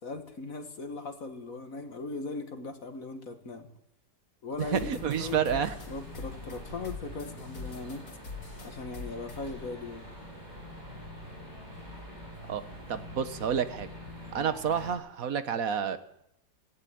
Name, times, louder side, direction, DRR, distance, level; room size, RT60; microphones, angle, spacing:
voice 1, 0.0-3.7 4.4-4.9 5.2-5.4 5.9-8.0 8.6-10.1 14.4-14.5, left 3 dB, 55° left, 6 dB, 2.3 m, -39 dB
sound 1, 4.5-9.6, left 4 dB, 85° left, 3.2 m, -44 dB
sound 2, 4.6-14.9, left 1 dB, 25° right, 6.5 m, -45 dB
voice 2, 4.7-5.7 12.5-12.6 12.9-13.9 14.3-16.0, right 7 dB, 55° right, 11 dB, 1.6 m, -29 dB
17.5 x 16.0 x 9.4 m, 0.76 s
omnidirectional pair, 1.8 m